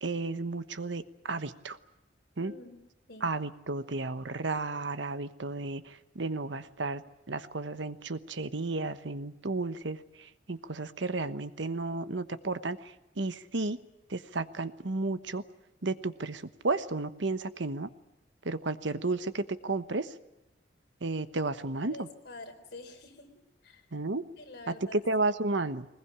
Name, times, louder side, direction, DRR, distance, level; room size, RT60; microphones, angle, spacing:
voice 1, 0.0-1.8 2.4-2.5 3.2-7.0 7.3-13.8 14.1-15.4 15.8-17.9 18.4-20.1 21.0-22.1 23.9-24.2 24.7-25.9, right 3 dB, 75° right, 12 dB, 1.1 m, -33 dB
voice 2, 2.4-2.8 3.1-3.3 21.9-23.3 23.6-23.9 24.4-25.0, left 2 dB, 55° left, 4 dB, 4.0 m, -47 dB
22.0 x 20.5 x 10.0 m, 0.90 s
head